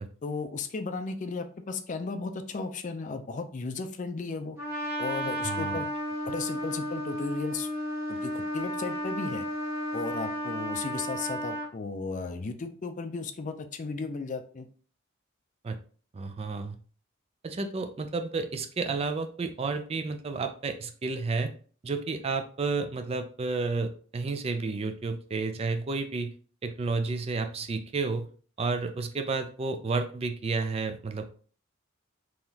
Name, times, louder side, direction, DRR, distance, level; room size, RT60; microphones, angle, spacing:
voice 1, 0.2-4.6 5.0-5.9 6.2-7.7 8.1-9.5 9.9-14.7, left 4 dB, 40° left, 8 dB, 0.4 m, -35 dB
Trumpet, 4.6-11.7, equal, 10° right, 1.4 m, -33 dB
voice 2, 5.4-5.8 15.6-15.8 16.1-16.8 17.4-21.5 21.8-26.3 26.6-28.3 28.6-31.3, right 4 dB, 30° right, 7 dB, 0.3 m, -31 dB
3.9 x 3.0 x 2.7 m, 0.42 s
head